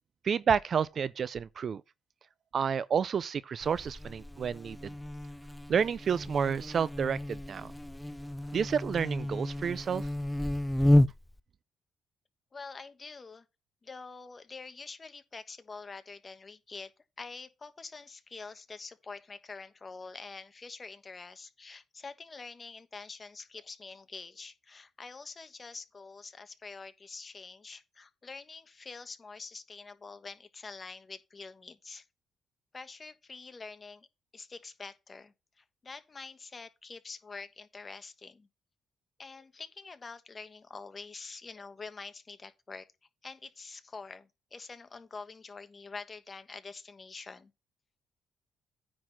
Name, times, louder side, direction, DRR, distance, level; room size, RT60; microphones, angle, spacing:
voice 1, 0.2-1.8 2.5-4.8 5.7-7.7 8.5-10.1, right 7 dB, 50° right, 0.5 m, -30 dB
Buzz, 3.6-11.4, left 1 dB, 5° left, 0.5 m, -31 dB
voice 2, 12.5-13.4 13.8-16.9 17.2-32.0 32.7-34.1 34.3-38.5 39.2-42.9 43.2-47.5, left 4 dB, 30° left, 1.2 m, -46 dB
9.5 x 4.1 x 5.8 m
cardioid pair, 90°, 0 cm